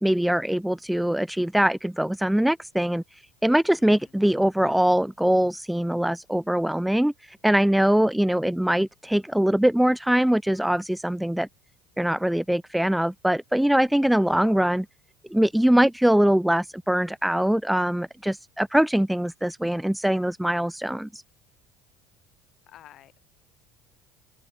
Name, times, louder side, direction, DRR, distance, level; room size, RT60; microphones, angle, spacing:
voice 1, 0.0-3.0 3.4-11.5 12.0-14.9 15.3-21.2, right 1 dB, 5° right, 0.7 m, -22 dB
voice 2, 3.4-4.1 13.8-14.4 22.7-23.2, left 12 dB, 50° left, 6.5 m, -53 dB
open air
supercardioid pair, 115°, 0 cm